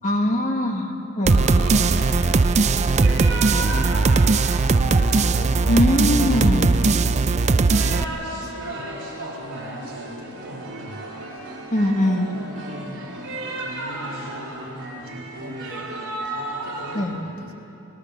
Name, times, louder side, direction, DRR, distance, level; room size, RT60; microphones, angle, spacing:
voice 1, 0.0-1.4 5.7-6.9 11.7-12.3 16.9-17.2, left 1 dB, 35° left, 3 dB, 1.7 m, -22 dB
sound 1, 1.3-8.0, right 3 dB, 30° right, 0.5 m, -19 dB
sound 2, 1.3-17.0, right 2 dB, 60° right, 4.5 m, -34 dB
voice 2, 1.3-2.3 2.7-4.9 6.8-11.6 12.3-15.9 16.2-17.5, equal, 80° right, 1 dB, 2.8 m, -41 dB
24.0 x 18.5 x 6.6 m, 2.9 s
head